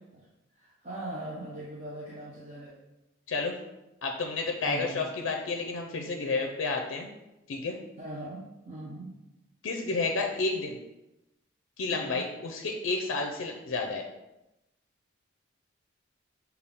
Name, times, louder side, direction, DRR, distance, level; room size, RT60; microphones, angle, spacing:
voice 1, 0.5-2.7 4.6-5.3 8.0-9.1 11.9-12.2, right 1 dB, 35° right, -6 dB, 0.6 m, -40 dB
voice 2, 4.0-7.1 7.5-7.8 9.6-10.8 11.8-14.0, left 3 dB, 70° left, 2 dB, 0.4 m, -31 dB
5.4 x 2.3 x 3.5 m, 0.95 s
head